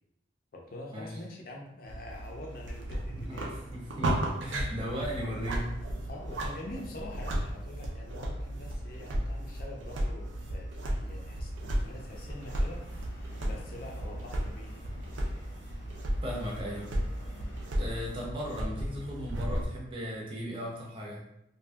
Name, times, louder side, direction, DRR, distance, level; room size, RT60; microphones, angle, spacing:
voice 1, 0.5-3.6 6.1-14.9, left 1 dB, 50° left, 0 dB, 0.5 m, -45 dB
sound 1, 1.9-19.7, right 1 dB, 80° right, 0.5 m, -35 dB
voice 2, 3.1-5.8 16.2-16.9 17.8-21.2, equal, 30° right, -3 dB, 0.6 m, -37 dB
Subway metro underground, 9.7-20.2, equal, 80° left, 0.7 m, -52 dB
2.7 x 2.5 x 2.2 m, 0.84 s
head